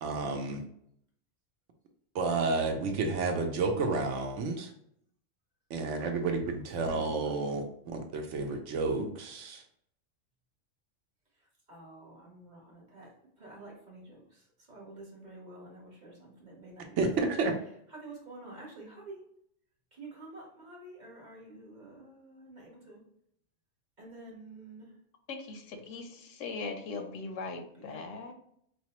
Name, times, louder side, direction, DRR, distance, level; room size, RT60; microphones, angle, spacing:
voice 1, 0.0-0.6 2.1-4.7 5.7-7.6 7.9-9.6 17.0-17.6, right 3 dB, 70° right, 4 dB, 0.9 m, -30 dB
voice 2, 6.8-7.3 11.7-13.1 13.4-17.4 17.9-19.2 19.9-23.0 24.0-24.9 27.7-28.3, right 2 dB, 40° right, -2 dB, 1.0 m, -49 dB
voice 3, 25.3-28.3, left 4 dB, 80° left, 6 dB, 0.9 m, -40 dB
4.4 x 2.0 x 2.9 m, 0.71 s
omnidirectional pair, 1.3 m